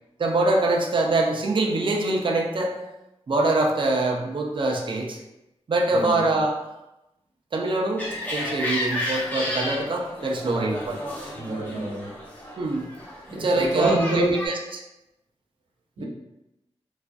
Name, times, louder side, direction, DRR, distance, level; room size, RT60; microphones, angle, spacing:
voice 1, 0.2-2.7 3.3-5.2 5.7-6.5 7.5-8.1 8.3-11.0 12.6-12.8 13.3-14.8, right 2 dB, 45° right, 0 dB, 0.4 m, -24 dB
sound 1, 8.0-14.5, left 1 dB, 15° left, 0.7 m, -32 dB
voice 2, 11.3-12.1 13.3-14.4 16.0-16.1, right 1 dB, 85° right, -5 dB, 0.8 m, -26 dB
2.4 x 2.3 x 2.2 m, 0.93 s
wide cardioid pair, 65°, 12 cm